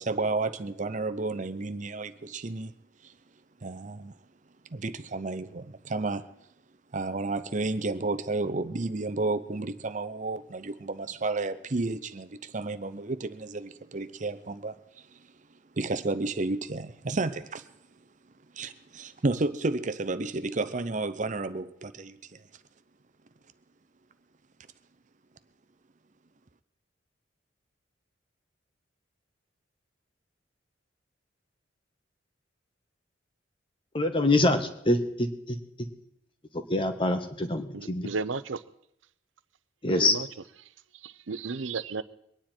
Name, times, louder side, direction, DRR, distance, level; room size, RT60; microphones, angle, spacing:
voice 1, 0.0-2.7 3.0-3.1 3.6-4.1 4.7-6.3 6.9-15.2 15.7-17.7 18.5-22.4, right 3 dB, 40° right, 0.7 m, -32 dB
voice 2, 33.9-35.6 36.7-38.1 39.8-40.1, left 2 dB, 25° left, 1.4 m, -25 dB
voice 3, 37.7-38.6 39.9-40.3 41.0-42.0, right 4 dB, 85° right, 0.7 m, -33 dB
23.5 x 9.9 x 4.5 m
head